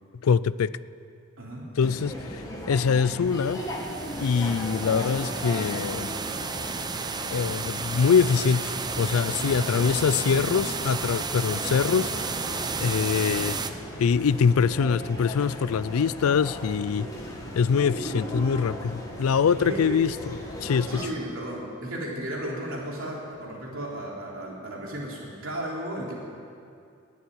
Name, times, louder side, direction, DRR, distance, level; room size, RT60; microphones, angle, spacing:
voice 1, 0.2-0.7 1.8-3.6 4.1-6.1 7.3-12.5 12.8-13.6 14.0-17.1 17.5-20.9, left 6 dB, 80° left, 18 dB, 0.4 m, -24 dB
voice 2, 1.4-1.7 9.4-9.7 19.6-20.0 20.9-26.1, right 1 dB, 65° right, -3 dB, 3.5 m, -34 dB
sound 1, 1.8-21.1, equal, 15° left, 2.0 m, -37 dB
sound 2, 3.3-13.7, right 4 dB, 20° right, 0.6 m, -32 dB
19.0 x 7.2 x 9.6 m, 2.4 s
head